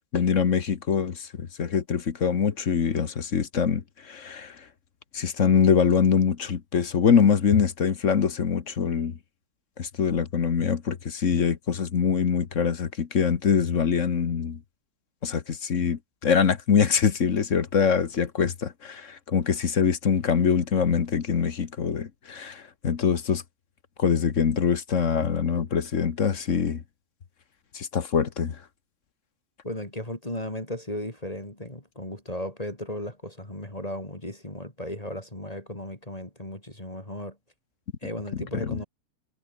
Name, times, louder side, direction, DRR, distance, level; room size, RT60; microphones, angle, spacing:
voice 1, 0.1-4.5 5.1-9.2 9.8-14.6 15.2-23.4 24.0-26.8 27.7-28.6 38.6-38.8, left 6 dB, 50° left, 1.5 m, -24 dB
voice 2, 29.6-37.4 38.0-38.8, left 1 dB, 20° left, 4.4 m, -35 dB
omnidirectional pair, 1.7 m